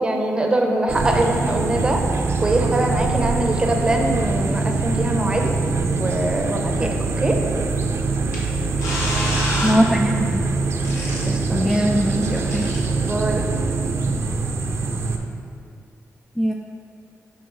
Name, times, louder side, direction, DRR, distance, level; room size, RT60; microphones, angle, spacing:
voice 1, 0.0-2.0 2.4-5.5 5.9-7.4 11.3-11.8 13.0-13.4, right 1 dB, 20° right, 2 dB, 0.7 m, -23 dB
sound 1, 0.9-15.2, right 3 dB, 55° right, 0.6 m, -23 dB
sound 2, 8.3-8.4 8.8-9.8 10.9-11.2 12.5-12.8, left 1 dB, 75° left, 1.7 m, -27 dB
voice 2, 9.6-10.4 11.5-12.7 16.4-16.5, equal, 5° left, 1 dB, 0.3 m, -20 dB
7.8 x 5.5 x 3.9 m, 2.2 s
wide cardioid pair, 150°, 5 cm